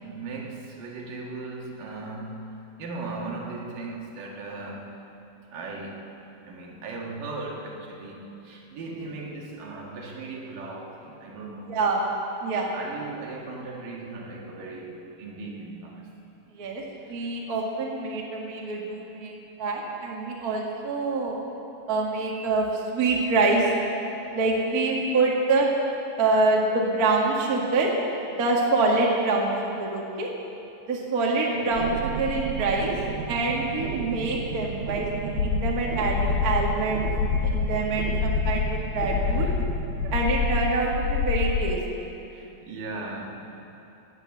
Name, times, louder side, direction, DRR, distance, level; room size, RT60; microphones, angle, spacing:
voice 1, 0.0-2.5 2.8-5.0 5.5-6.1 6.5-11.9 12.7-16.1 16.6-16.7 17.0-17.3 31.5-31.7 39.2-39.6 40.0-40.2 42.3-43.7, right 3 dB, 65° right, -2 dB, 3.3 m, -38 dB
voice 2, 11.7-12.0 12.4-12.7 16.5-16.8 17.1-21.4 21.9-22.6 22.9-23.7 24.3-25.7 26.2-27.9 28.3-30.3 30.9-32.9 33.3-37.0 37.4-39.5 40.1-42.1, right 3 dB, 40° right, -2 dB, 1.4 m, -25 dB
sound 1, 31.7-41.2, right 6 dB, 80° right, 2.6 m, -33 dB
sound 2, 35.4-41.8, left 6 dB, 85° left, 1.7 m, -27 dB
17.0 x 9.6 x 7.1 m, 2.9 s
omnidirectional pair, 4.2 m